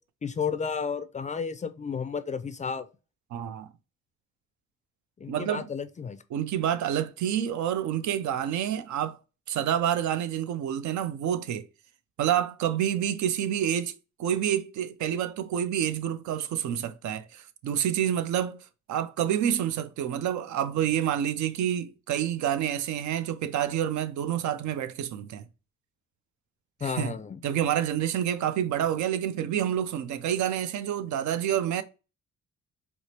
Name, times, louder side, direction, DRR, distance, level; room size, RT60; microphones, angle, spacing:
voice 1, 0.2-2.9 5.2-6.2 26.8-27.4, left 6 dB, 25° left, 0.4 m, -32 dB
voice 2, 3.3-3.7 5.3-5.7 6.3-9.2 9.5-11.6 12.2-13.9 14.2-18.6 18.9-25.4 26.8-27.1 27.4-31.8, right 10 dB, 70° right, 0.5 m, -28 dB
4.6 x 2.0 x 2.8 m
cardioid pair, 90°, 30 cm